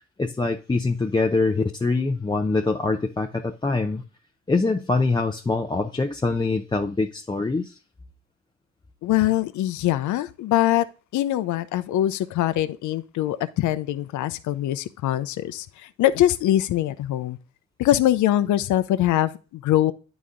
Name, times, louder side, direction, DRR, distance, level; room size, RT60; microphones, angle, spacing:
voice 1, 0.2-4.0 4.5-7.8, left 3 dB, 15° left, 0.6 m, -24 dB
voice 2, 9.0-10.9 11.1-17.4 17.8-19.9, left 13 dB, 75° left, 0.6 m, -23 dB
9.6 x 4.1 x 3.6 m
cardioid pair, 90°, 30 cm